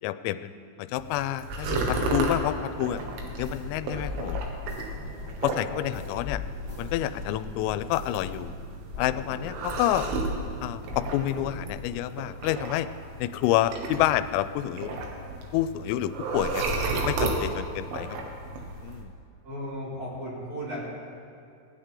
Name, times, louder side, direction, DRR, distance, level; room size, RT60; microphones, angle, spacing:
voice 1, 0.0-3.0 3.4-4.4 5.4-6.4 6.8-8.5 9.0-10.1 10.6-12.9 13.2-14.9 15.5-16.7 17.0-18.2 18.8-19.1, left 13 dB, 90° left, 13 dB, 3.2 m, -28 dB
sound 1, 1.0-19.0, right 2 dB, 75° right, 4.0 m, -33 dB
sound 2, 2.9-8.6 8.9-10.6 10.9-11.9, left 3 dB, 10° right, 3.6 m, -39 dB
voice 2, 19.4-20.8, equal, 45° right, -9 dB, 6.8 m, -35 dB
20.0 x 17.5 x 3.8 m, 2.4 s
omnidirectional pair, 5.8 m